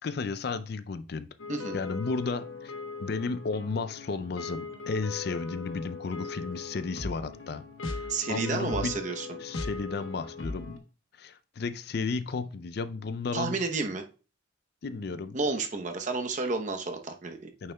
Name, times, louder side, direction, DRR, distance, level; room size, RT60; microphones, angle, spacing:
voice 1, 0.0-1.3 1.7-2.7 3.0-7.6 7.9-8.9 9.4-10.8 11.2-13.6 14.8-15.4 17.6-17.7, left 4 dB, 55° left, 0.4 m, -33 dB
sound 1, 1.4-10.8, left 3 dB, 90° left, 1.0 m, -39 dB
voice 2, 8.1-9.3 13.3-14.0 15.3-17.5, right 3 dB, 40° right, 0.8 m, -31 dB
9.0 x 6.5 x 2.2 m
head